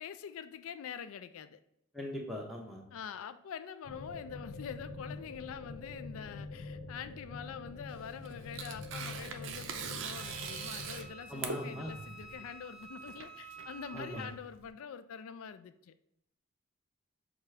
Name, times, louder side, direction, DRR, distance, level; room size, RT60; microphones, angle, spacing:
voice 1, 0.0-1.6 2.9-15.9, left 7 dB, 75° left, 12 dB, 0.3 m, -45 dB
voice 2, 1.9-2.8 11.3-11.9 13.9-14.3, equal, ahead, -1 dB, 0.7 m, -40 dB
sound 1, 3.8-11.1, left 3 dB, 60° left, 0.7 m, -45 dB
Tearing, 7.9-14.7, right 6 dB, 60° right, 0.4 m, -43 dB
Wind instrument woodwind instrument, 10.1-14.4, right 3 dB, 25° right, 0.8 m, -50 dB
6.0 x 2.4 x 3.2 m, 0.80 s
head